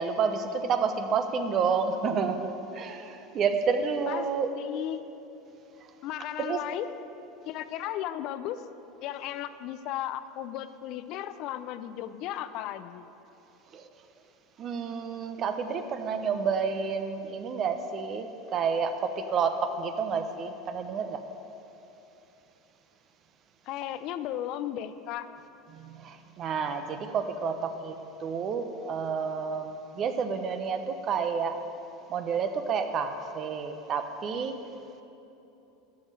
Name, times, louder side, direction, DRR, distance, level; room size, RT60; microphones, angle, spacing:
voice 1, 0.0-4.5 6.4-6.6 13.7-13.9 14.6-21.2 25.7-31.6 32.1-34.6, right 5 dB, 45° right, 7 dB, 0.8 m, -30 dB
voice 2, 4.6-5.0 6.0-7.0 7.5-8.7 9.0-13.0 23.7-25.3, left 12 dB, 55° left, 12 dB, 0.5 m, -35 dB
11.5 x 5.4 x 8.3 m, 3.0 s
hypercardioid pair, 100°, 0 cm